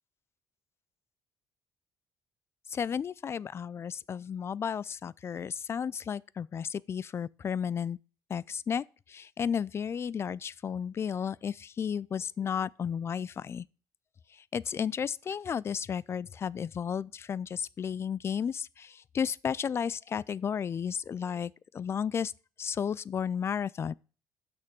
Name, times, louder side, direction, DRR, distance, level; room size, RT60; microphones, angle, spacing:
voice 1, 2.7-8.0 8.3-13.7 14.3-22.3 22.6-23.9, left 7 dB, 35° left, 0.3 m, -33 dB
6.3 x 6.0 x 6.8 m
cardioid pair, 105°, 7 cm